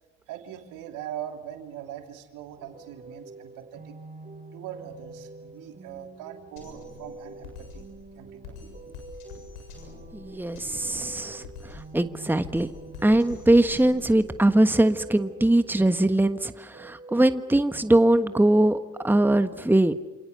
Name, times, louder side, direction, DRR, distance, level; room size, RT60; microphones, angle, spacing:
voice 1, 0.3-4.0 4.5-7.9 8.2-8.6 9.5-9.6, right 10 dB, 75° right, 4 dB, 3.1 m, -41 dB
sound 1, 2.6-19.2, right 3 dB, 30° right, 5.7 m, -46 dB
Drum kit, 6.6-14.5, left 4 dB, 85° left, 7.2 m, -46 dB
voice 2, 10.1-12.7 13.0-18.8 19.0-19.9, right 1 dB, 5° right, 10 dB, 1.4 m, -21 dB
28.5 x 28.0 x 7.0 m, 1.1 s
hypercardioid pair, 55°, 33 cm